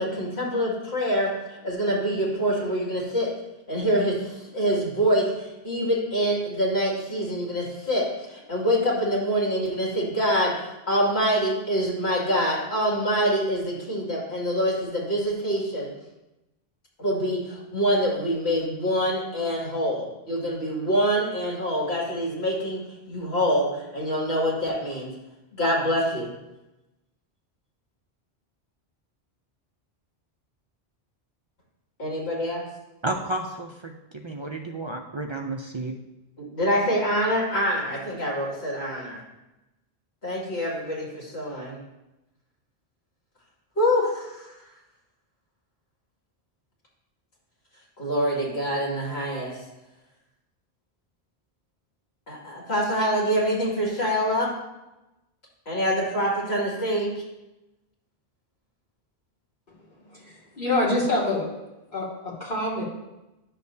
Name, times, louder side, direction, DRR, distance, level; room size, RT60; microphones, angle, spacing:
voice 1, 0.0-3.3 3.7-15.9 17.0-22.8 23.1-25.1 25.5-26.3 32.0-32.6 36.5-39.2 40.2-41.8 43.8-44.5 48.0-49.6 52.3-54.5 55.7-57.1, equal, 75° left, -4 dB, 2.6 m, -25 dB
voice 2, 33.0-36.0, right 2 dB, 40° right, 3 dB, 0.4 m, -32 dB
voice 3, 60.1-61.5 61.9-62.8, left 2 dB, 50° left, -5 dB, 2.3 m, -26 dB
10.5 x 6.7 x 2.7 m, 0.98 s
omnidirectional pair, 1.1 m